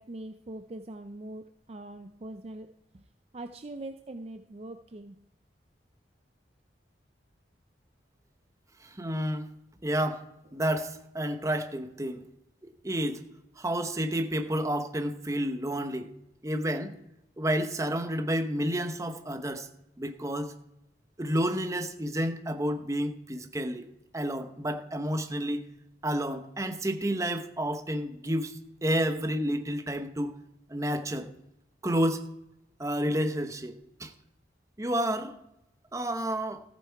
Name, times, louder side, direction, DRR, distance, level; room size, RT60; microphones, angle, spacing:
voice 1, 0.0-2.7 2.9-3.0 3.3-5.2, right 2 dB, 35° right, 7 dB, 0.5 m, -42 dB
voice 2, 8.8-9.5 9.8-10.3 10.5-12.2 12.8-13.2 13.6-16.1 16.4-16.9 17.4-19.7 20.0-20.5 21.2-23.9 24.1-25.6 26.0-28.6 28.8-30.3 30.7-31.3 31.8-32.3 32.8-34.1 34.8-35.4 35.9-36.6, equal, 15° right, 7 dB, 0.9 m, -30 dB
14.0 x 8.3 x 4.6 m, 0.87 s
head